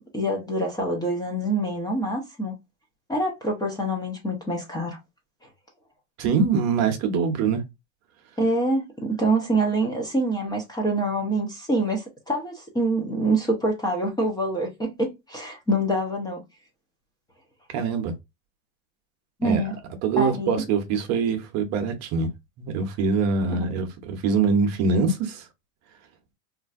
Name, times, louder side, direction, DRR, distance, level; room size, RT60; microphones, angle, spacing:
voice 1, 0.1-2.5 3.1-5.0 8.4-16.4 19.4-19.8 20.2-20.6 23.5-23.7, right 1 dB, 10° left, 0.6 m, -25 dB
voice 2, 6.2-7.6 17.7-18.1 19.4-19.6 20.0-22.3 22.6-25.5, right 5 dB, 40° right, 0.8 m, -24 dB
3.1 x 2.6 x 2.4 m
supercardioid pair, 125°, 40 cm